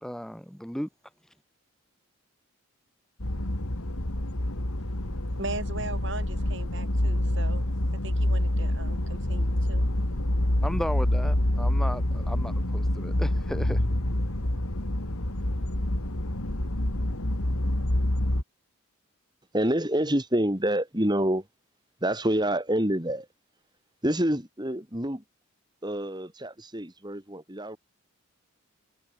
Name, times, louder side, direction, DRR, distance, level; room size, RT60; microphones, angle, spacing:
voice 1, 0.0-0.9 10.6-13.8, equal, ahead, 1.5 m, -35 dB
sound 1, 3.2-18.4, left 1 dB, 80° left, 3.0 m, -27 dB
voice 2, 4.8-7.6 8.0-9.9, right 2 dB, 55° right, 7.7 m, -39 dB
voice 3, 19.5-21.5 22.0-23.3 24.0-25.2 25.8-27.8, right 1 dB, 20° right, 3.0 m, -27 dB
head